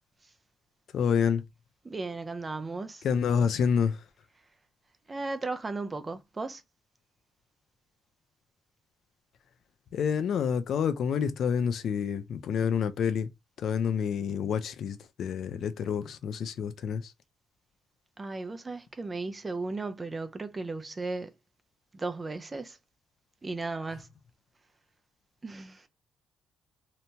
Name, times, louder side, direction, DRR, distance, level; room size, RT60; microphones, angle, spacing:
voice 1, 0.9-1.4 3.0-4.0 9.9-13.3 13.6-17.1, left 7 dB, 65° left, 0.4 m, -28 dB
voice 2, 1.8-3.1 5.1-6.6 18.2-21.3 21.9-22.8 23.4-24.1 25.4-25.9, right 3 dB, 25° right, 0.4 m, -35 dB
2.8 x 2.1 x 2.7 m
cardioid pair, 90°, 0 cm